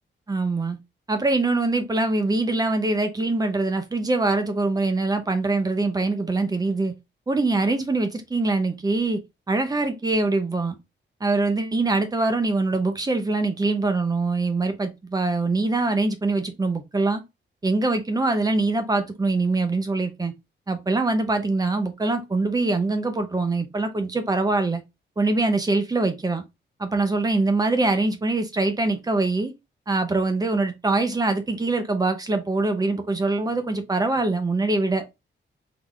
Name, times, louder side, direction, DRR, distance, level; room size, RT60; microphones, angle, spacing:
voice 1, 0.3-0.8 1.1-6.9 7.3-9.2 9.5-10.7 11.2-17.2 17.6-20.3 20.7-24.8 25.2-26.4 26.8-29.5 29.9-35.0, right 2 dB, 20° right, 0.8 m, -23 dB
3.9 x 3.5 x 3.5 m
wide cardioid pair, 155°, 20 cm